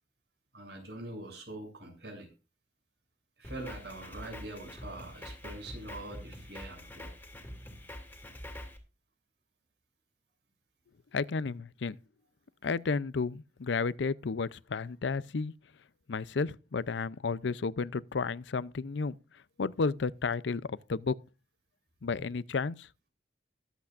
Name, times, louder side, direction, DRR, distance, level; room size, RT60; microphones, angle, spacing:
voice 1, 0.5-2.3 3.4-7.1, right 1 dB, 65° right, 7.0 m, -44 dB
Drum kit, 3.4-8.8, left 1 dB, 10° left, 2.5 m, -45 dB
voice 2, 11.1-12.0 12.6-15.5 16.1-19.1 19.6-21.1 22.0-22.9, left 4 dB, 80° left, 0.5 m, -32 dB
21.5 x 8.3 x 2.5 m
head